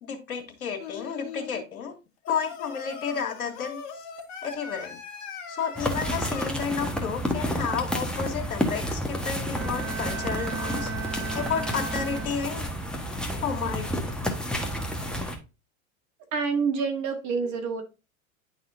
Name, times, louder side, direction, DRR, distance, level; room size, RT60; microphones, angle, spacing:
voice 1, 0.0-1.9 2.3-3.8 4.4-5.0 5.5-10.9 11.3-12.7 13.4-14.1, left 6 dB, 85° left, 1.7 m, -31 dB
Singing, 0.8-1.6 2.2-6.5, left 6 dB, 50° left, 1.7 m, -40 dB
sound 1, 5.8-15.4, equal, ahead, 1.4 m, -30 dB
Bowed string instrument, 9.5-12.7, right 5 dB, 25° right, 1.0 m, -36 dB
voice 2, 16.3-17.8, right 5 dB, 45° right, 2.0 m, -27 dB
10.5 x 4.2 x 2.7 m
hypercardioid pair, 95°, 42 cm